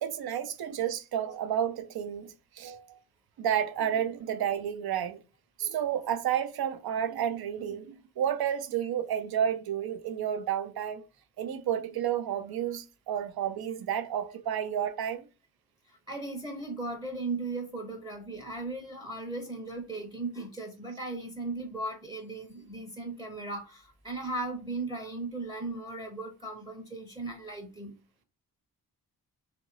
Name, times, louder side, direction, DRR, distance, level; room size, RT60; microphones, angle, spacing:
voice 1, 0.0-3.0 3.4-5.2 5.6-11.0 11.4-15.2, right 9 dB, 60° right, 0.6 m, -31 dB
voice 2, 15.9-27.9, right 2 dB, 10° right, 0.7 m, -37 dB
2.7 x 2.5 x 3.1 m
cardioid pair, 50°, 41 cm